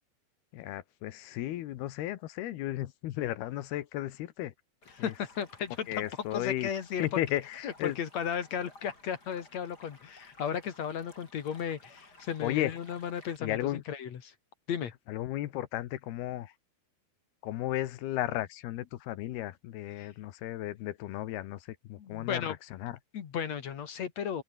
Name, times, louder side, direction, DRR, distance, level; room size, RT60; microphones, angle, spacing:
voice 1, 0.5-4.5 5.0-5.1 5.9-6.7 7.0-8.0 12.4-12.8 13.4-13.8 15.1-16.5 17.4-23.0, left 14 dB, 85° left, 3.2 m, -34 dB
Stream, 4.8-13.4, left 2 dB, 25° left, 6.6 m, -57 dB
voice 2, 5.0-6.0 6.3-7.2 7.6-14.3 14.7-14.9 20.0-20.1 21.9-22.6 23.1-24.4, left 8 dB, 50° left, 2.6 m, -35 dB
open air
omnidirectional pair, 4.5 m